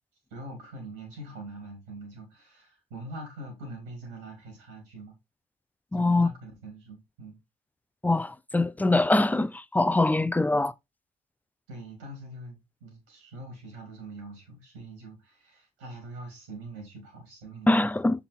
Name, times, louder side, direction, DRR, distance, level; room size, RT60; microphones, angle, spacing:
voice 1, 0.3-5.2 5.9-7.4 10.2-10.3 11.7-17.8, right 2 dB, 80° right, 3.6 m, -43 dB
voice 2, 5.9-6.3 8.0-10.7 17.7-18.3, left 2 dB, 10° left, 0.4 m, -23 dB
7.1 x 5.8 x 3.5 m
hypercardioid pair, 50°, 20 cm